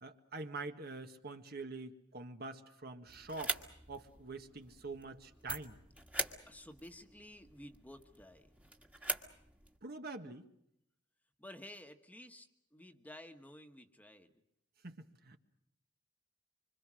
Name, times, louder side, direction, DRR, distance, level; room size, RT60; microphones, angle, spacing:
voice 1, 0.0-3.6 3.9-5.8 9.8-10.5 14.8-15.4, right 3 dB, 55° right, 6 dB, 1.7 m, -45 dB
sound 1, 3.1-9.8, right 1 dB, 5° right, 1.7 m, -43 dB
voice 2, 6.5-8.5 11.4-14.3, left 1 dB, 10° left, 6 dB, 1.4 m, -53 dB
26.0 x 25.5 x 6.3 m, 0.76 s
head